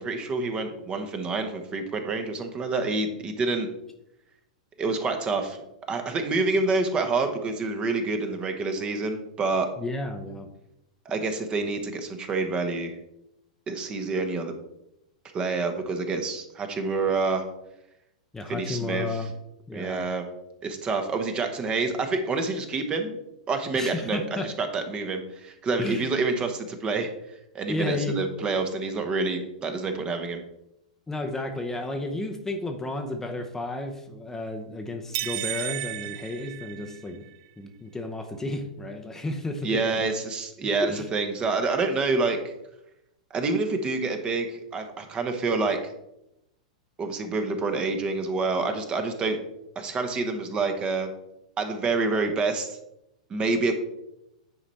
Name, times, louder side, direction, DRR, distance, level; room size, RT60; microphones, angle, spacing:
voice 1, 0.0-3.7 4.8-5.6 5.9-9.7 11.0-13.0 13.7-14.5 15.3-17.4 18.5-19.2 19.7-20.2 20.6-23.2 23.5-27.1 27.5-30.4 39.6-42.4 43.3-45.9 47.0-49.4 49.7-51.1 51.6-52.8 53.3-53.8, right 3 dB, 25° right, 6 dB, 1.1 m, -27 dB
voice 2, 9.8-10.5 18.3-19.3 19.7-20.1 23.7-24.5 25.8-26.1 27.7-28.2 31.1-37.3 37.6-40.1 40.6-41.1, left 2 dB, 10° left, 4 dB, 0.8 m, -32 dB
sound 1, 35.1-37.3, right 15 dB, 55° right, 0.4 m, -33 dB
9.6 x 4.2 x 4.2 m, 0.86 s
hypercardioid pair, 110°, 4 cm